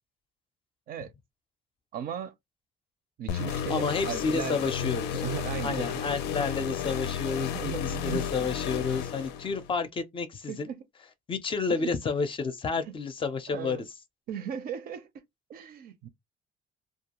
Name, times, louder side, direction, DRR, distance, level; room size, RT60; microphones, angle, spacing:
voice 1, 1.9-2.3 3.2-6.0 7.5-8.2 10.5-10.8 11.7-11.9 12.8-12.9 13.5-13.9 14.3-15.1 15.5-16.1, right 9 dB, 60° right, 0.5 m, -37 dB
sound 1, 3.3-9.7, left 8 dB, 85° left, 0.5 m, -33 dB
voice 2, 3.7-5.2 5.6-10.7 11.3-13.8, left 4 dB, 30° left, 0.4 m, -30 dB
2.3 x 2.2 x 2.9 m
cardioid pair, 110°, 17 cm